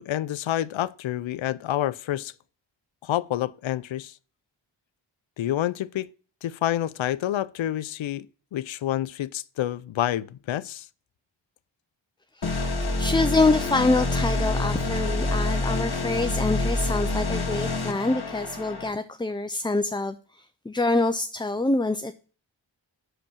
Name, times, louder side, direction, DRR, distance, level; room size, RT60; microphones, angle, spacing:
voice 1, 0.0-2.3 3.0-4.1 5.4-6.1 6.4-8.3 8.5-10.9, left 13 dB, 70° left, 0.6 m, -28 dB
voice 2, 12.3-12.7 13.0-22.1, left 2 dB, 10° left, 0.5 m, -26 dB
sound 1, 12.4-18.9, left 2 dB, 50° left, 1.6 m, -27 dB
6.1 x 5.2 x 6.9 m
cardioid pair, 40°, 48 cm